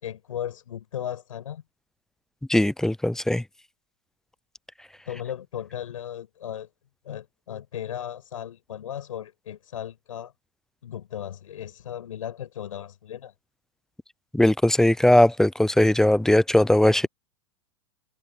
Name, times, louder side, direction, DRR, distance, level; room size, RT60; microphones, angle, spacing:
voice 1, 0.0-1.6 5.1-6.7 7.0-10.3 10.8-13.3 16.9-17.0, left 10 dB, 85° left, 6.7 m, -36 dB
voice 2, 2.5-3.4 14.3-17.1, left 1 dB, 5° left, 0.6 m, -19 dB
hypercardioid pair, 115°, 17 cm